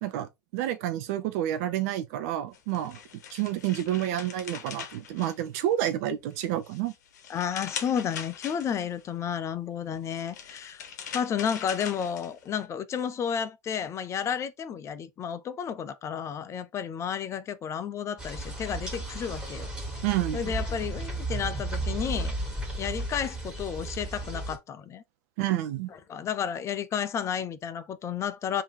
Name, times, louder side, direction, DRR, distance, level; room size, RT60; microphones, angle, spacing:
voice 1, 0.0-3.0 3.3-6.9 20.0-20.5 25.4-25.9, right 12 dB, 60° right, 0.8 m, -29 dB
sound 1, 2.5-5.9 6.3-9.0 9.9-12.6, left 8 dB, 70° left, 0.9 m, -41 dB
voice 2, 7.3-10.8 11.1-19.7 20.3-22.3 22.8-25.0 25.9-28.6, left 8 dB, 30° left, 0.5 m, -32 dB
sound 2, 18.2-24.6, right 2 dB, 10° right, 2.0 m, -34 dB
3.6 x 2.8 x 4.7 m
hypercardioid pair, 85°, 9 cm